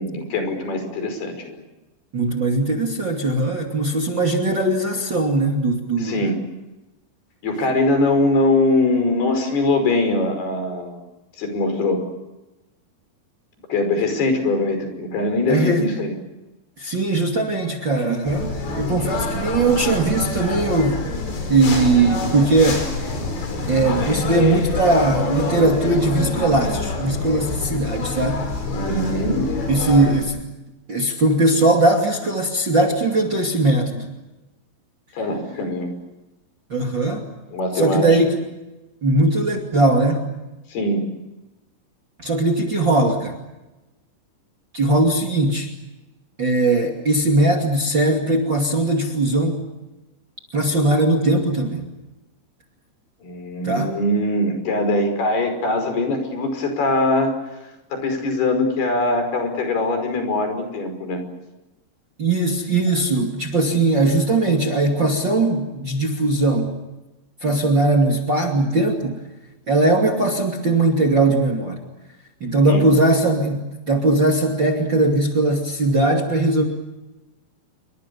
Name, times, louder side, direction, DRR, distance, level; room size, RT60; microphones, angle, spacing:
voice 1, 0.0-1.6 6.0-6.4 7.4-11.0 11.4-12.0 13.7-16.1 28.7-29.5 35.1-35.9 37.5-38.2 40.7-41.0 53.2-57.3 57.9-61.2 72.7-72.9, left 2 dB, 65° left, 6 dB, 7.3 m, -22 dB
voice 2, 2.1-6.2 15.5-15.9 16.8-21.0 21.5-22.8 23.7-28.4 29.7-30.4 30.9-34.1 36.7-37.2 37.7-38.4 39.0-40.2 42.2-43.3 44.7-45.7 46.4-49.6 50.5-51.8 53.6-53.9 62.2-66.8 67.4-69.2 69.7-71.8 72.4-76.6, right 2 dB, 30° right, 1 dB, 2.6 m, -19 dB
sound 1, 18.3-30.2, left 3 dB, 90° left, 7.3 m, -26 dB
28.5 x 24.5 x 7.0 m, 1.0 s
omnidirectional pair, 5.0 m